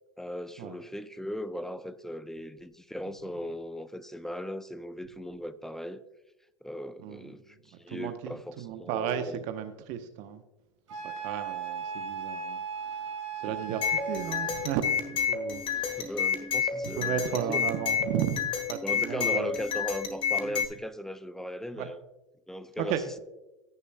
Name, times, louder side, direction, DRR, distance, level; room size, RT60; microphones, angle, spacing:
voice 1, 0.2-6.0 6.6-9.4 13.4-13.6 15.7-17.7 18.8-22.0 22.5-23.2, equal, 5° left, 0.5 m, -38 dB
voice 2, 7.0-7.3 7.9-10.4 10.9-13.1 13.4-16.1 16.8-19.5 21.8-21.9 22.8-23.0, right 10 dB, 50° right, 1.0 m, -34 dB
Wind instrument woodwind instrument, 10.9-14.8, right 6 dB, 80° right, 2.6 m, -37 dB
sound 1, 13.8-20.7, left 7 dB, 35° left, 1.5 m, -30 dB
15.5 x 6.7 x 2.3 m
hypercardioid pair, 85°, 16 cm